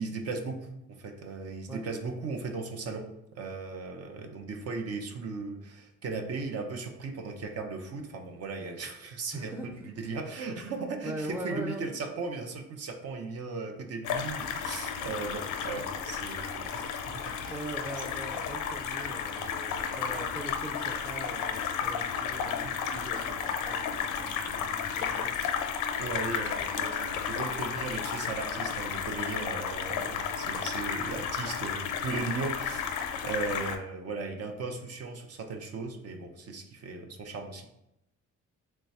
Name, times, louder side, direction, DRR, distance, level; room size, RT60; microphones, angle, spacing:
voice 1, 0.0-3.1 3.3-16.9 17.3-17.6 19.9-20.0 22.6-23.1 26.0-37.7, right 4 dB, 55° right, 4 dB, 0.6 m, -37 dB
voice 2, 9.3-9.7 11.0-11.8 17.5-25.3, right 1 dB, 5° right, 2 dB, 0.4 m, -41 dB
sound 1, 14.0-33.8, left 7 dB, 90° left, 0.5 m, -33 dB
3.1 x 2.2 x 4.1 m, 0.86 s
cardioid pair, 90°, 30 cm